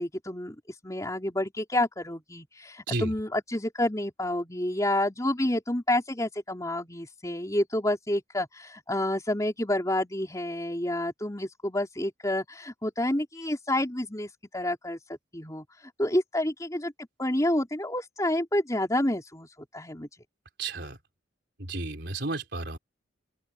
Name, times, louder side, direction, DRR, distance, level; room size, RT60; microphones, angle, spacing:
voice 1, 0.0-16.9 17.2-20.1, left 1 dB, 20° left, 4.1 m, -29 dB
voice 2, 20.6-21.0 21.6-22.8, right 2 dB, 60° right, 4.5 m, -32 dB
head